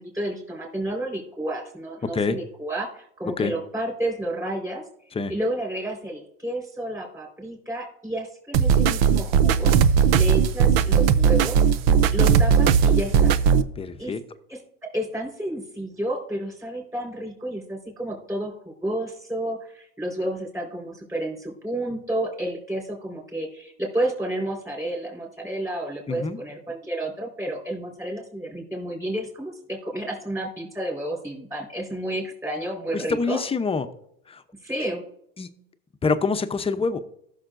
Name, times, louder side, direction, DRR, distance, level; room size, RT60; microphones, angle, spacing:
voice 1, 0.0-4.8 5.3-9.7 10.1-11.7 12.1-13.4 14.0-14.2 14.5-33.4 34.6-35.0, right 1 dB, 10° right, 0 dB, 4.2 m, -31 dB
sound 1, 8.5-13.6, right 7 dB, 90° right, 0.6 m, -18 dB
voice 2, 13.8-14.2 26.1-26.4 32.9-33.9 34.3-34.4 35.4-35.6 36.0-37.0, left 4 dB, 20° left, 10 dB, 0.7 m, -26 dB
15.5 x 6.6 x 2.6 m, 0.72 s
supercardioid pair, 115°, 29 cm